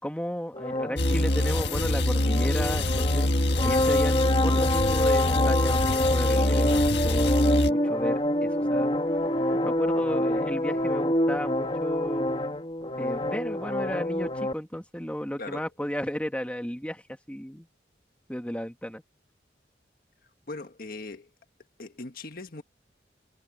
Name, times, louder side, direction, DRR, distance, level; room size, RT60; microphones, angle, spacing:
voice 1, 0.0-3.3 3.6-12.3 13.0-17.7 18.3-19.0, equal, 5° left, 1.9 m, -34 dB
sound 1, 0.5-14.5, left 1 dB, 30° left, 2.0 m, -26 dB
sound 2, 1.0-7.7, left 1 dB, 80° left, 1.7 m, -25 dB
voice 2, 20.5-21.3 21.8-22.6, left 2 dB, 55° left, 1.7 m, -39 dB
head